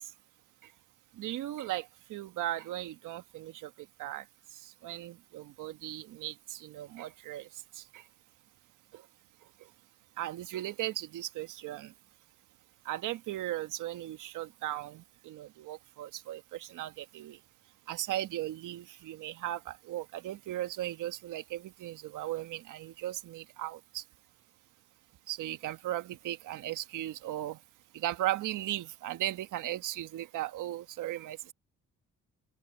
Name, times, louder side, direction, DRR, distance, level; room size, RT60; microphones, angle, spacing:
voice 1, 1.2-3.7 4.0-4.2 4.6-7.5 7.7-8.0 8.9-9.0 10.2-11.9 12.8-17.4 17.9-24.0 25.3-27.6 27.9-31.5, right 14 dB, 85° right, 1.5 m, -37 dB
open air
cardioid pair, 90°, 30 cm